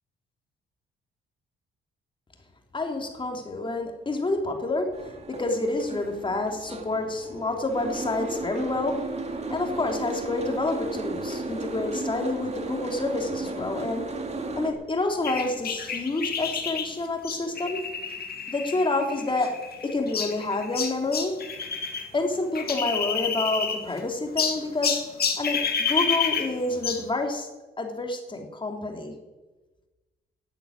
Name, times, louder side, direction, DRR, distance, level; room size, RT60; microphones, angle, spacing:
voice 1, 2.7-9.0 9.5-14.0 14.5-17.8 18.5-19.6 19.8-21.3 22.1-25.0 25.4-27.5 27.8-29.1, left 2 dB, 25° left, 3 dB, 2.8 m, -28 dB
Boat Water vehicle, 4.9-14.7, right 3 dB, 35° right, 2.4 m, -34 dB
sound 1, 15.2-22.1 22.3-24.0 24.4-27.1, left 6 dB, 50° left, 2.1 m, -29 dB
12.5 x 8.3 x 9.6 m, 1.2 s
cardioid pair, 90°, 20 cm